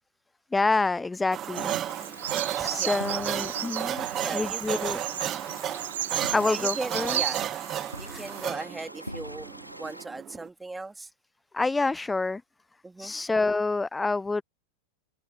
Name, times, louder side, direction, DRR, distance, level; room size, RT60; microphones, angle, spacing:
voice 1, 0.5-1.7 2.6-4.1 4.3-5.0 6.3-7.4 8.1-8.2 11.5-12.4 13.0-14.4, left 3 dB, 10° left, 0.6 m, -27 dB
sound 1, 1.3-10.5, right 11 dB, 30° right, 1.4 m, -34 dB
Bird vocalization bird call bird song, 1.6-7.4, right 12 dB, 60° right, 0.8 m, -34 dB
sound 2, 1.9-10.1, equal, 90° right, 3.4 m, -44 dB
voice 2, 2.6-3.8 4.2-4.9 6.5-7.4 8.0-11.1 12.8-13.1, right 3 dB, 10° right, 3.2 m, -38 dB
open air
figure-of-eight pair, 90°, 0 cm